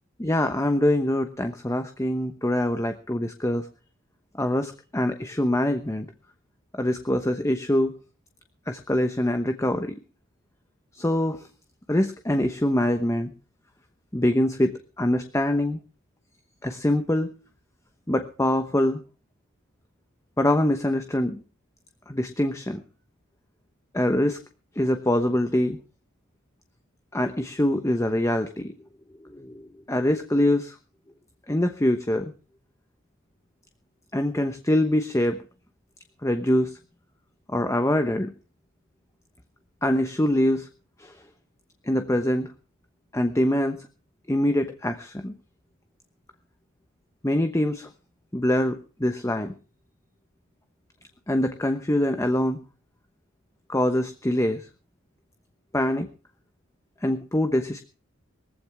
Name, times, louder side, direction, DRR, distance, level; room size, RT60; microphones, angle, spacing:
voice 1, 0.2-3.7 4.4-6.1 6.8-7.9 8.7-10.0 10.9-11.4 11.9-13.3 14.1-15.8 16.6-17.3 18.1-19.0 20.4-21.4 22.1-22.8 23.9-24.4 24.8-25.8 27.1-28.7 29.2-30.7 31.5-32.3 34.1-35.4 36.2-36.8 37.5-38.3 39.8-40.7 41.0-41.1 41.9-42.5 43.1-43.8 44.3-45.3 47.2-47.9 48.3-49.5 51.3-52.6 53.7-54.7 55.7-56.1 57.0-57.8, left 1 dB, 15° left, 7 dB, 1.0 m, -24 dB
19.5 x 15.0 x 3.5 m, 0.37 s
head